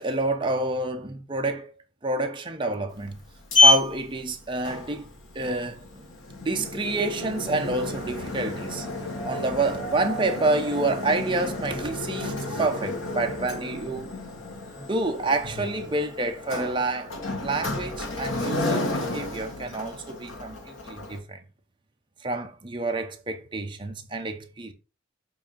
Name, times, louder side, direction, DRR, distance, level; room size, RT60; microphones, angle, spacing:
voice 1, 0.0-1.7 2.0-3.2 3.6-5.1 5.3-6.0 6.4-8.9 9.2-14.1 14.8-17.1 17.4-21.4 22.2-24.7, right 2 dB, 25° right, 0.9 m, -28 dB
Sliding door, 2.9-21.2, left 2 dB, 80° left, 1.6 m, -29 dB
sound 1, 8.0-13.5, right 4 dB, 15° left, 1.1 m, -41 dB
7.2 x 2.9 x 5.3 m
head